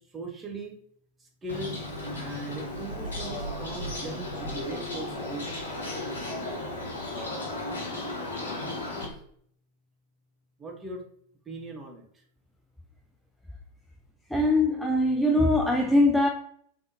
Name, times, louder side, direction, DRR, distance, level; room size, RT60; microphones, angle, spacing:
voice 1, 0.1-0.8 1.4-1.8 2.1-5.5 9.1-9.2 10.6-11.0 11.5-12.0, right 2 dB, 20° right, 0.8 m, -39 dB
Bird, 1.5-9.0, left 1 dB, 65° left, 1.3 m, -34 dB
voice 2, 14.3-16.3, left 1 dB, 5° left, 0.3 m, -22 dB
3.5 x 3.3 x 2.6 m
figure-of-eight pair, 90°, 0 cm